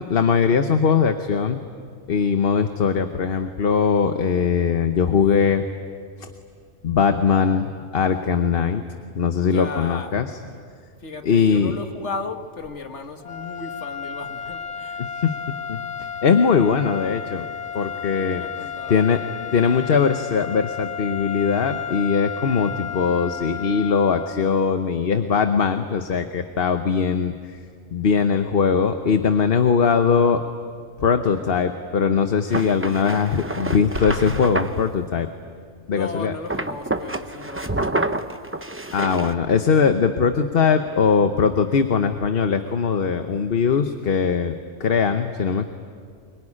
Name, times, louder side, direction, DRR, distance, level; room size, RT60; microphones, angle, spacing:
voice 1, 0.0-1.6 2.1-5.6 6.2-6.3 6.8-8.8 9.1-10.3 11.2-11.7 15.0-15.4 15.7-15.8 16.2-17.4 17.7-18.4 18.9-19.2 19.5-27.6 27.9-30.4 31.0-35.3 35.9-36.3 38.9-45.6, left 6 dB, 55° left, 7 dB, 1.1 m, -20 dB
voice 2, 9.4-10.2 11.0-15.0 18.1-19.0 35.9-38.3, left 4 dB, 75° left, 6 dB, 1.9 m, -35 dB
sound 1, 13.2-24.7, left 8 dB, 35° left, 0.8 m, -33 dB
sound 2, 32.5-34.8 36.5-39.3, right 2 dB, 15° right, 0.7 m, -28 dB
sound 3, 33.9-34.4, equal, 70° right, 6.6 m, -31 dB
24.0 x 22.5 x 10.0 m, 2.2 s
omnidirectional pair, 1.2 m